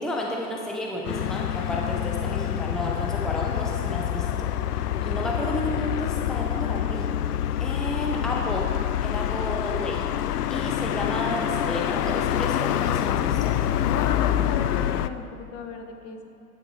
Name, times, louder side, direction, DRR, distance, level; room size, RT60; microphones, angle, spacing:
voice 1, 0.0-4.5 4.8-7.1 7.6-8.7 9.0-13.6, left 1 dB, ahead, -1 dB, 0.7 m, -32 dB
sound 1, 1.0-15.1, left 11 dB, 80° left, 0.5 m, -26 dB
voice 2, 13.8-16.2, left 5 dB, 35° left, 6 dB, 1.0 m, -35 dB
13.0 x 9.1 x 3.2 m, 2.7 s
hypercardioid pair, 110°, 46 cm